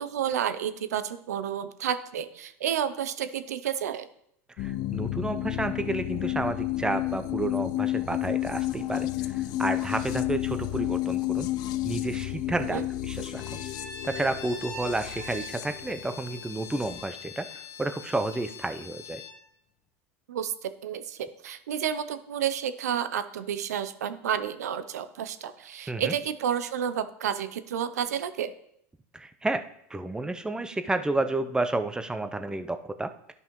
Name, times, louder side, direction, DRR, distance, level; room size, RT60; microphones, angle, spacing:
voice 1, 0.0-4.1 12.7-12.8 20.3-28.5, right 9 dB, 85° right, 12 dB, 0.6 m, -31 dB
sound 1, 4.6-17.0, left 15 dB, 55° left, 0.5 m, -31 dB
voice 2, 4.6-11.5 11.8-13.6 14.0-19.2 25.9-26.1 29.1-29.6 29.9-33.3, right 2 dB, 10° right, 9 dB, 0.6 m, -31 dB
Bowed string instrument, 13.3-19.4, left 3 dB, 35° left, 1.3 m, -42 dB
12.0 x 5.5 x 3.1 m, 0.72 s
hypercardioid pair, 95°, 8 cm